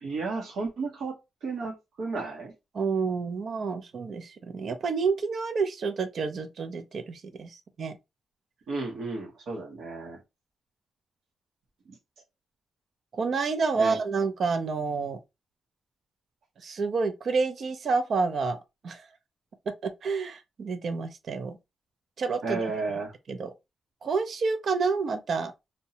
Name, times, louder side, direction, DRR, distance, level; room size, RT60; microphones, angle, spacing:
voice 1, 0.0-2.5 8.7-10.2 11.9-12.0 13.8-14.0 22.4-23.1, right 3 dB, 85° right, 0.9 m, -33 dB
voice 2, 2.7-7.9 13.1-15.2 16.6-18.6 18.8-19.0 19.8-21.6 22.2-22.6 23.3-23.5 24.0-25.5, right 4 dB, 55° right, 0.4 m, -29 dB
2.7 x 2.1 x 2.8 m
wide cardioid pair, 130°, 0 cm